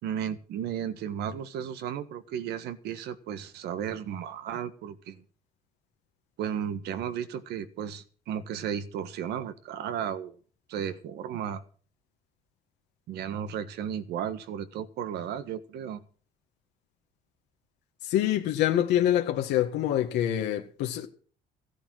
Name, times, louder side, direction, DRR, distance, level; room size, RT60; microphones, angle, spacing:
voice 1, 0.0-5.2 6.4-10.4 10.7-11.6 13.1-16.0, right 8 dB, 80° right, 1.6 m, -34 dB
voice 2, 18.1-21.1, left 11 dB, 85° left, 1.7 m, -25 dB
15.5 x 10.0 x 6.4 m
cardioid pair, 110°, 17 cm